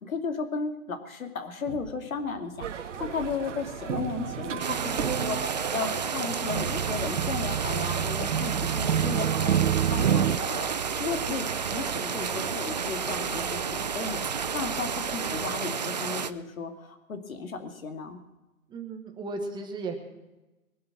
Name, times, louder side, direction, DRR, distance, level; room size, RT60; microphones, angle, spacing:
voice 1, 0.0-10.7 10.9-14.2 14.5-18.2, left 5 dB, 70° left, 6 dB, 2.6 m, -35 dB
sound 1, 1.7-2.0 2.6-2.8 3.0-10.4, right 9 dB, 85° right, 0.7 m, -29 dB
sound 2, 2.6-15.6, right 8 dB, 55° right, 1.5 m, -40 dB
sound 3, 4.6-16.3, right 6 dB, 35° right, 0.4 m, -31 dB
voice 2, 18.7-20.0, right 3 dB, 10° right, 4 dB, 1.3 m, -35 dB
22.5 x 7.9 x 6.1 m, 1.1 s
hypercardioid pair, 145°, 42 cm